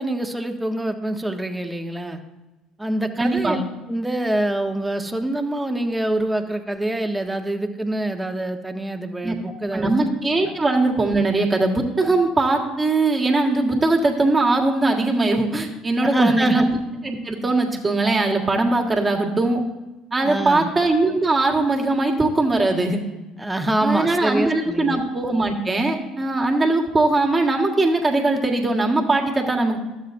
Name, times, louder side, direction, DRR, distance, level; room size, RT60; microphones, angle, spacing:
voice 1, 0.0-2.2 2.8-3.6 3.9-10.1 10.4-10.5 16.0-16.7 20.2-20.7 23.4-25.0, right 1 dB, 10° right, 5 dB, 0.9 m, -25 dB
voice 2, 3.2-3.6 9.2-9.3 9.7-19.6 20.1-23.0 23.8-29.8, right 2 dB, 25° right, 1 dB, 1.5 m, -20 dB
12.0 x 7.5 x 2.6 m, 1.1 s
hypercardioid pair, 65°, 0 cm